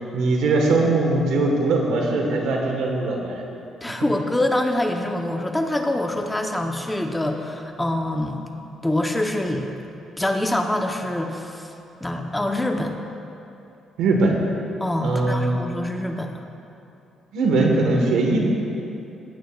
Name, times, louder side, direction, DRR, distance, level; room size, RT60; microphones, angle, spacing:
voice 1, 0.1-3.4 4.0-4.1 14.0-14.4 15.0-15.6 17.3-18.4, right 2 dB, 85° right, 0 dB, 1.4 m, -21 dB
voice 2, 3.8-8.4 8.8-9.7 10.2-11.7 12.0-12.9 14.8-16.5, left 1 dB, 10° left, 3 dB, 0.8 m, -25 dB
16.0 x 8.8 x 2.4 m, 2.8 s
cardioid pair, 90°, 0 cm